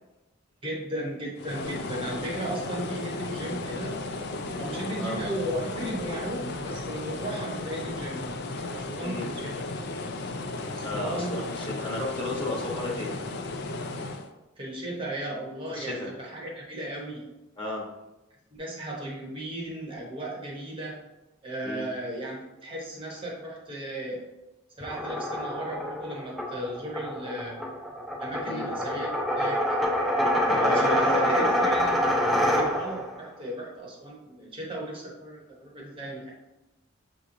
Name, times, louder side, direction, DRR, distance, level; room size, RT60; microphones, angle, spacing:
voice 1, 0.6-4.0 4.6-8.3 8.7-9.6 10.7-11.4 14.6-17.3 18.6-21.0 21.4-24.2 24.7-27.6 28.2-29.8 30.5-36.3, right 1 dB, 25° right, -3 dB, 0.8 m, -36 dB
sound 1, 1.4-14.3, left 2 dB, 55° left, 0.4 m, -35 dB
voice 2, 10.8-13.1 15.7-16.1 17.6-17.8 21.6-21.9 28.4-28.7 30.5-31.6, left 1 dB, 25° left, -3 dB, 1.0 m, -33 dB
sound 2, 24.8-33.1, equal, ahead, 0.5 m, -26 dB
6.2 x 2.9 x 2.6 m, 1.0 s
head